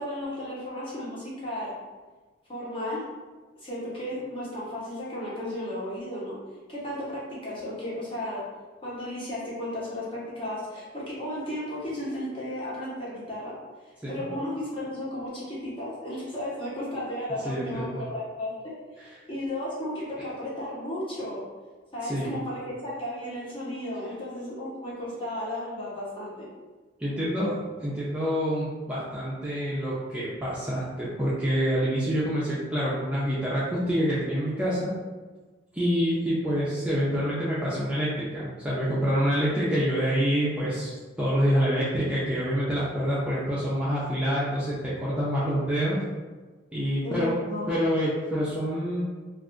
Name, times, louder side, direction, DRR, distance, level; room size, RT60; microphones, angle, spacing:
voice 1, 0.0-1.8 2.5-3.0 3.6-6.4 6.7-8.4 8.8-13.5 13.8-21.4 21.9-26.5 47.0-47.7, left 1 dB, 30° left, -7 dB, 0.9 m, -34 dB
voice 2, 17.4-18.0 22.0-22.4 27.0-34.9 35.7-46.0 46.7-47.4 47.7-49.1, equal, 5° right, -9 dB, 0.4 m, -27 dB
2.4 x 2.3 x 3.6 m, 1.3 s
head